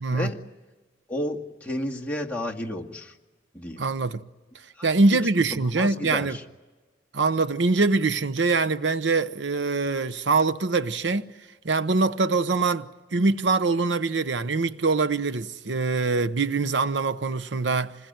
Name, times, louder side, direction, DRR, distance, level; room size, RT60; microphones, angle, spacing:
voice 1, 0.0-0.3 3.8-4.2 4.8-6.4 7.1-11.3 11.6-18.0, right 3 dB, 85° right, 0.9 m, -23 dB
voice 2, 1.1-3.1 3.5-3.8 4.8-4.9 5.5-6.4, left 1 dB, 10° left, 2.2 m, -32 dB
27.5 x 20.5 x 9.3 m
head